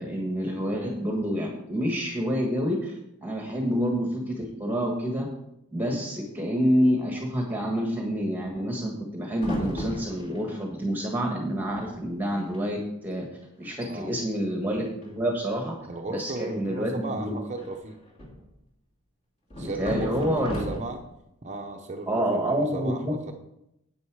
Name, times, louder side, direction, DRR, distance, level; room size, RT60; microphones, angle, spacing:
voice 1, 0.0-5.3 5.7-12.8 13.0-13.3 13.6-15.7 16.1-17.3 19.6-20.6 22.1-23.1, equal, 10° right, 0 dB, 1.4 m, -28 dB
sound 1, 9.3-10.5 11.4-11.5 11.7-12.1 12.4-12.6 13.1-13.2 13.6-13.9 15.0-15.6 17.6-18.5 19.5-21.1, equal, 30° left, 2.7 m, -35 dB
voice 2, 13.8-14.1 15.9-18.0 19.6-21.0 21.4-23.3, right 2 dB, 30° right, 3 dB, 0.8 m, -35 dB
9.6 x 8.5 x 4.7 m, 0.82 s
head